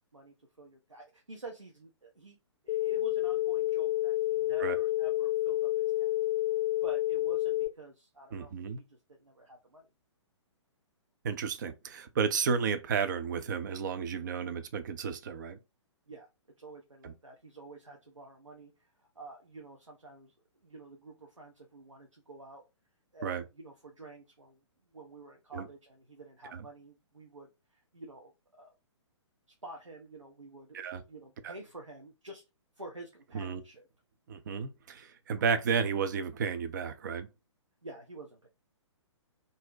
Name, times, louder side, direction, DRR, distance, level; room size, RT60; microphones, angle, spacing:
voice 1, 0.1-2.4 2.6-6.2 6.8-9.9 16.1-16.3 16.6-22.6 23.1-24.6 24.9-28.7 29.6-32.4 32.8-33.9 37.8-38.5, right 2 dB, 85° right, 0.7 m, -49 dB
sound 1, 2.7-7.7, left 15 dB, 40° left, 0.4 m, -29 dB
voice 2, 8.3-8.8 11.2-15.6 17.0-17.1 23.2-23.4 25.5-25.7 26.5-26.6 30.7-31.0 31.4-31.5 33.3-33.6 34.3-37.3, right 6 dB, 40° right, 0.4 m, -32 dB
2.6 x 2.0 x 3.8 m
figure-of-eight pair, 125°, 16 cm